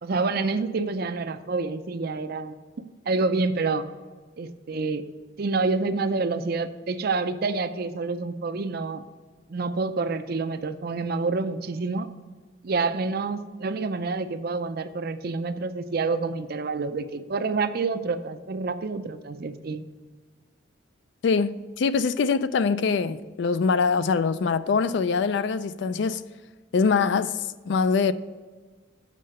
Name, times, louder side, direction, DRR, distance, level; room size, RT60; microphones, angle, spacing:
voice 1, 0.0-2.5 3.1-3.9 4.4-5.0 5.4-9.0 9.5-12.1 12.6-19.8, right 3 dB, 50° right, 0.5 m, -28 dB
voice 2, 21.2-26.2 26.7-28.1, left 5 dB, 60° left, 0.4 m, -23 dB
7.5 x 5.5 x 6.5 m
head